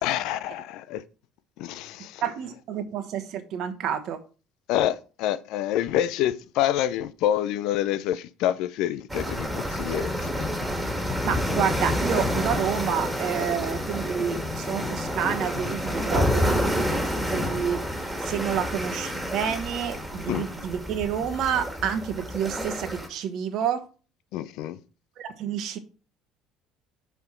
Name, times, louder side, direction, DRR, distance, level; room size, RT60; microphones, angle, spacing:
voice 1, 0.0-1.0 1.6-2.2 4.7-10.5 20.3-20.5 24.3-24.8, left 12 dB, 65° left, 0.5 m, -27 dB
voice 2, 2.2-4.2 11.2-17.8 18.2-23.8 25.2-25.8, right 8 dB, 55° right, 1.1 m, -29 dB
sound 1, 9.1-23.1, equal, 10° right, 2.1 m, -28 dB
5.8 x 5.7 x 4.4 m
hypercardioid pair, 60°, 0 cm